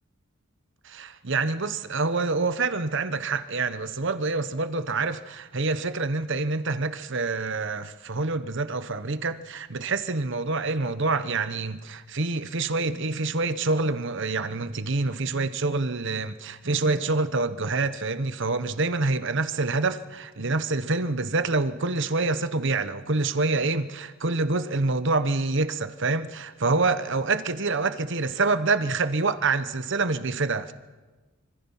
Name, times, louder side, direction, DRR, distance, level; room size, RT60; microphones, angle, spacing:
voice 1, 0.8-30.7, right 3 dB, 60° right, 1.1 m, -26 dB
26.0 x 25.5 x 5.7 m
head